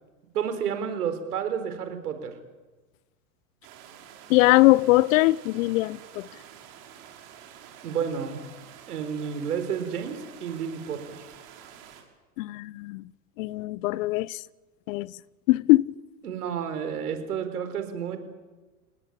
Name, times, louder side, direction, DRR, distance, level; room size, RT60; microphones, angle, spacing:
voice 1, 0.3-2.3 7.8-8.4 8.9-11.3 16.2-18.2, right 7 dB, 80° right, 4.8 m, -31 dB
sound 1, 3.6-12.0, right 9 dB, 55° right, 5.9 m, -48 dB
voice 2, 4.3-6.3 12.4-13.0 13.4-14.4 14.9-15.1 15.5-15.9, left 20 dB, 60° left, 0.9 m, -21 dB
29.5 x 19.0 x 8.9 m
hypercardioid pair, 100°, 45 cm